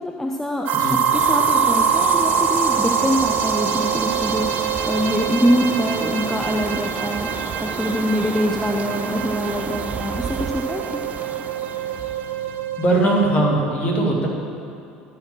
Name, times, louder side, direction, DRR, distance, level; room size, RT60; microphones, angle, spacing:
voice 1, 0.0-11.0, equal, 10° left, 1 dB, 0.7 m, -24 dB
sound 1, 0.7-13.3, right 6 dB, 55° right, 0.8 m, -24 dB
sound 2, 1.1-12.7, right 7 dB, 35° right, 0.3 m, -32 dB
voice 2, 12.8-14.3, right 2 dB, 35° left, -1 dB, 2.2 m, -19 dB
12.5 x 5.0 x 6.1 m, 2.5 s
hypercardioid pair, 75°, 4 cm